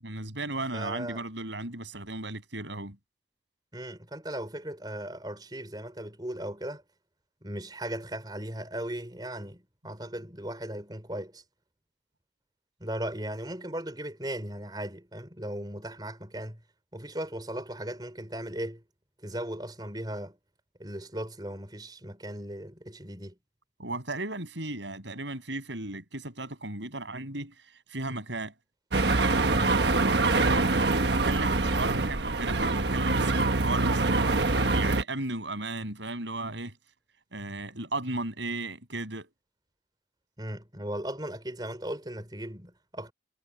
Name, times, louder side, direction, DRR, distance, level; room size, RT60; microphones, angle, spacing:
voice 1, 0.0-3.0 23.8-27.5 27.9-28.5 30.0-36.7 37.3-39.3, right 2 dB, 90° right, 7.8 m, -35 dB
voice 2, 0.7-1.2 3.7-6.8 7.4-11.4 12.8-16.6 16.9-18.8 19.2-20.4 20.8-23.3 29.5-29.8 40.4-43.1, right 1 dB, 25° right, 4.3 m, -37 dB
sound 1, 28.9-35.0, right 3 dB, 70° right, 1.3 m, -25 dB
head